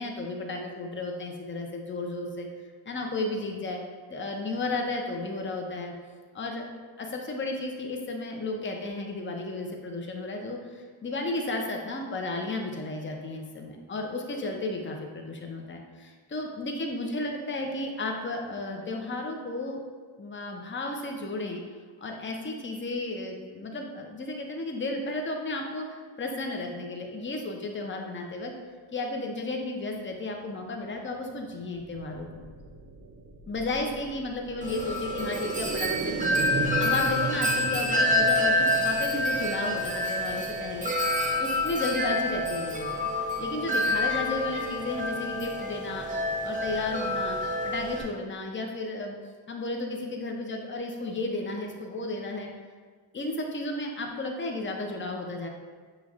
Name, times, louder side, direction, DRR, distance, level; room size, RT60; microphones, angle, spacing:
voice 1, 0.0-2.5 2.9-3.8 4.1-5.9 6.3-6.6 7.0-19.8 20.2-21.6 22.0-25.8 26.2-28.5 28.9-32.5 33.5-36.1 36.8-40.9 41.4-43.1 43.4-46.1 46.4-49.2 49.5-52.5 53.1-55.5, left 2 dB, 25° left, 2 dB, 0.7 m, -33 dB
sound 1, 31.6-41.4 41.8-41.9, right 3 dB, 30° right, 0.5 m, -36 dB
Wind chime, 34.6-48.0, left 1 dB, 15° right, 0.9 m, -28 dB
5.7 x 3.1 x 2.5 m, 1.5 s
cardioid pair, 55°, 50 cm